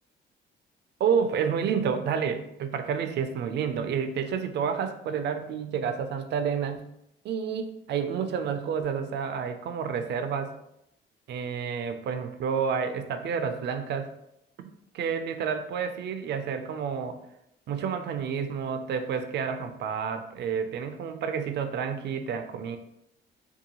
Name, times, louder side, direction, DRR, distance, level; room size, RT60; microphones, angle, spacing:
voice 1, 1.0-6.9 7.2-10.5 11.3-14.1 14.6-14.7 14.9-17.2 17.7-22.8, right 7 dB, 60° right, 8 dB, 0.4 m, -29 dB
2.7 x 2.2 x 2.8 m, 0.79 s
cardioid pair, 90°, 20 cm